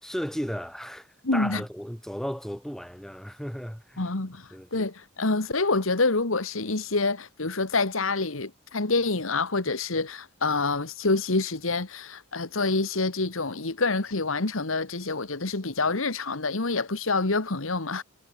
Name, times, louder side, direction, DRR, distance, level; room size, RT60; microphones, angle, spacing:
voice 1, 0.0-4.0 4.5-4.9, equal, ahead, 4.7 m, -35 dB
voice 2, 1.2-1.6 4.0-4.4 4.7-18.0, left 3 dB, 75° left, 1.8 m, -27 dB
head